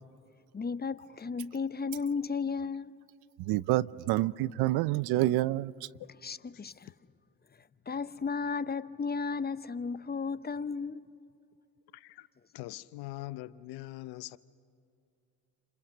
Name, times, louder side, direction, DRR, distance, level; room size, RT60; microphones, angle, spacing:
voice 1, 0.5-3.0 6.2-6.9 7.9-11.1, left 5 dB, 25° left, 0.9 m, -34 dB
voice 2, 3.4-5.7, right 16 dB, 75° right, 0.7 m, -28 dB
voice 3, 11.9-12.3 12.5-14.4, left 17 dB, 75° left, 0.8 m, -42 dB
30.0 x 27.5 x 6.6 m
hypercardioid pair, 50°, 38 cm